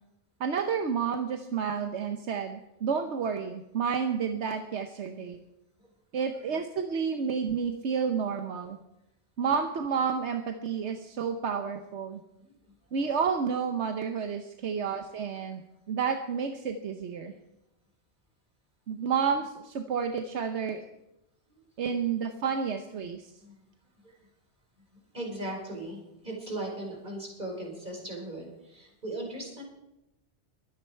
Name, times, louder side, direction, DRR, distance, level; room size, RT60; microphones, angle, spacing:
voice 1, 0.4-5.4 6.1-8.8 9.4-12.2 12.9-15.6 15.9-17.3 18.9-20.8 21.8-23.3, right 6 dB, 80° right, 6 dB, 1.2 m, -30 dB
voice 2, 6.2-6.6 7.2-7.3 12.4-12.7 14.6-14.8 21.5-21.6 23.4-23.7 24.0-24.3 25.1-29.6, right 1 dB, 45° right, -1 dB, 5.0 m, -39 dB
23.0 x 9.6 x 4.5 m, 0.91 s
omnidirectional pair, 1.2 m